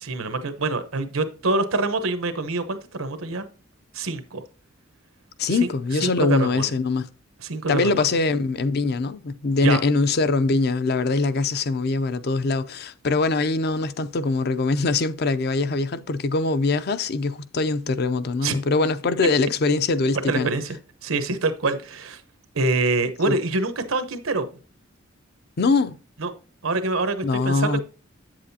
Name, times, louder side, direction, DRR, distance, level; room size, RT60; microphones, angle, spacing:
voice 1, 0.0-3.4 3.9-4.4 5.6-5.7 6.0-6.8 7.4-8.0 9.6-9.8 18.4-18.5 20.3-20.8 21.0-22.2 22.5-24.5 26.2-26.3 26.6-27.8, right 3 dB, 90° right, 1.0 m, -25 dB
voice 2, 5.4-7.1 7.7-20.5 23.3-23.4 25.6-26.0 27.2-27.8, left 3 dB, 50° left, 0.5 m, -23 dB
8.5 x 7.5 x 2.8 m
head